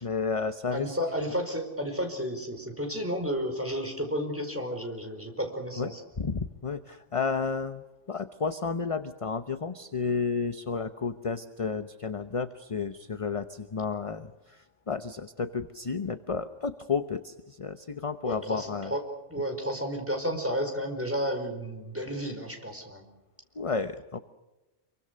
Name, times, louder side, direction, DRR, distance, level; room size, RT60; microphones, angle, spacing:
voice 1, 0.0-1.0 5.8-5.9 6.2-18.9 23.5-24.2, left 5 dB, 30° left, 10 dB, 0.9 m, -32 dB
voice 2, 0.7-6.0 18.2-19.0 19.3-23.0, equal, 10° right, 4 dB, 4.9 m, -32 dB
28.5 x 24.0 x 6.5 m, 1.0 s
omnidirectional pair, 1.2 m